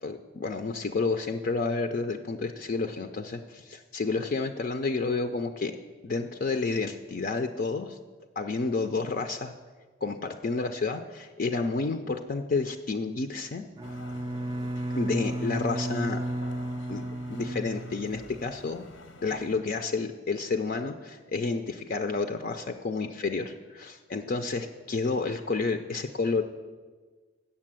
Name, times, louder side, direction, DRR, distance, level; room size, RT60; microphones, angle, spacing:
voice 1, 0.0-5.7 6.0-8.0 8.4-9.5 10.0-13.6 14.9-16.3 16.9-17.0 17.3-18.8 19.2-26.4, left 4 dB, 50° left, 7 dB, 0.4 m, -30 dB
sound 1, 13.8-19.6, left 2 dB, 85° left, 0.8 m, -48 dB
Bowed string instrument, 13.8-18.5, right 1 dB, 25° right, 0.4 m, -33 dB
8.4 x 7.0 x 7.5 m, 1.4 s
head